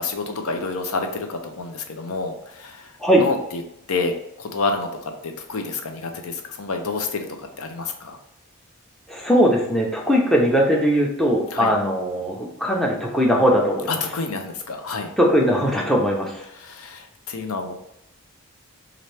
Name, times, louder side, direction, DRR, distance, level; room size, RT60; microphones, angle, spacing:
voice 1, 0.0-3.6 3.9-7.3 7.6-8.2 11.5-11.7 14.0-15.1 16.5-17.7, left 3 dB, 80° left, 5 dB, 0.6 m, -29 dB
voice 2, 9.1-13.9 15.2-16.5, equal, ahead, -2 dB, 0.6 m, -19 dB
4.2 x 2.6 x 3.3 m, 0.82 s
head